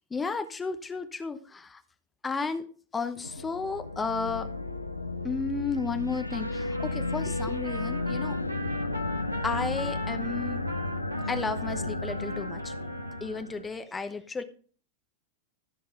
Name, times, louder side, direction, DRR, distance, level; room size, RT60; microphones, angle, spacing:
voice 1, 0.1-1.8 2.2-2.6 2.9-4.5 5.2-8.5 9.4-10.6 11.2-12.7 13.2-14.4, left 4 dB, 15° left, 9 dB, 0.9 m, -33 dB
sound 1, 3.2-13.7, left 2 dB, 85° left, 0.6 m, -33 dB
Trumpet, 6.3-13.4, equal, 80° right, 1.7 m, -42 dB
14.5 x 5.8 x 4.3 m, 0.42 s
figure-of-eight pair, 90°, 0 cm